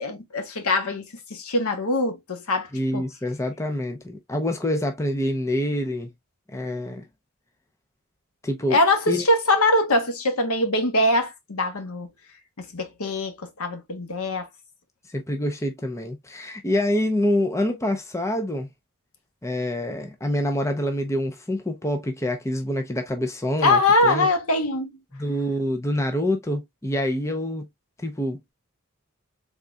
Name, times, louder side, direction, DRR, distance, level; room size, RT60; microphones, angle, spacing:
voice 1, 0.0-3.0 8.7-12.1 12.6-14.5 23.6-25.0, left 2 dB, 90° left, 1.0 m, -23 dB
voice 2, 2.7-6.1 6.5-7.1 8.4-8.8 9.1-9.2 15.1-18.7 19.4-24.3 25.1-27.7 28.0-28.4, left 1 dB, 15° left, 0.5 m, -26 dB
3.9 x 3.6 x 2.2 m
head